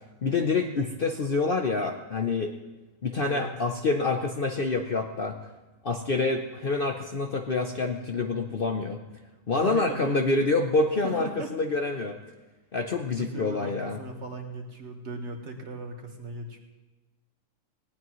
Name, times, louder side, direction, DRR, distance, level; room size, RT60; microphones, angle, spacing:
voice 1, 0.2-2.5 3.0-5.4 5.8-9.0 9.5-12.2 12.7-14.0, left 3 dB, 50° left, 5 dB, 0.7 m, -27 dB
voice 2, 9.5-10.3 11.0-11.5 13.1-16.6, right 2 dB, 50° right, 3 dB, 1.7 m, -37 dB
18.5 x 17.5 x 3.1 m, 1.1 s
omnidirectional pair, 1.6 m